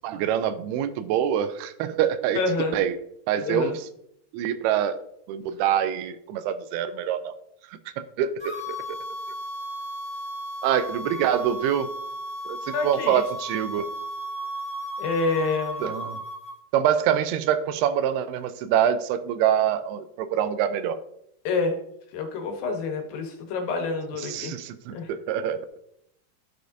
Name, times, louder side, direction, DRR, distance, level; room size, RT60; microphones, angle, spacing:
voice 1, 0.0-2.4 2.7-3.0 3.3-3.9 4.3-5.0 5.3-7.3 7.7-9.0 10.6-11.9 12.5-13.9 15.8-16.2 16.7-21.0 24.2-25.8, right 9 dB, 85° right, 12 dB, 2.5 m, -25 dB
voice 2, 2.4-2.8 3.4-3.8 12.7-13.2 15.0-15.9 21.4-21.8 22.1-24.5 24.9-25.1, left 3 dB, 70° left, 3 dB, 2.7 m, -27 dB
sound 1, 8.4-16.6, equal, 10° left, 1.4 m, -35 dB
11.5 x 6.3 x 2.6 m, 0.74 s
omnidirectional pair, 4.7 m